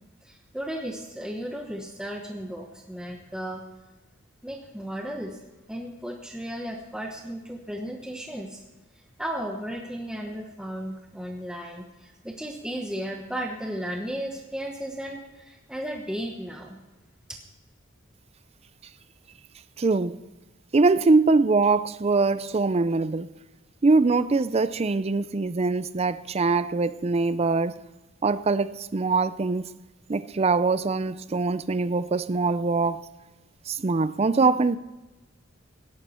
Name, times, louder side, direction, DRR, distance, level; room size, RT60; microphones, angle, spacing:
voice 1, 0.2-3.6 4.4-5.4 5.7-8.6 9.2-16.8, equal, 5° right, 1.1 m, -35 dB
voice 2, 19.8-20.2 20.7-23.3 23.8-27.8 28.2-29.7 30.1-33.0 33.7-34.8, right 3 dB, 30° right, 0.5 m, -23 dB
17.5 x 11.5 x 4.3 m
head